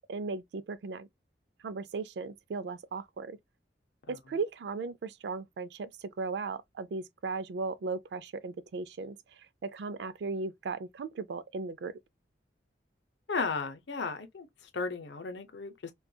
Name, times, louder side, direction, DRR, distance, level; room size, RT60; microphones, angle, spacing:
voice 1, 0.1-1.1 1.6-3.4 4.1-12.0, right 4 dB, 70° right, 0.4 m, -37 dB
voice 2, 13.3-14.5 14.7-15.9, left 4 dB, 80° left, 0.6 m, -34 dB
2.7 x 2.3 x 2.2 m
head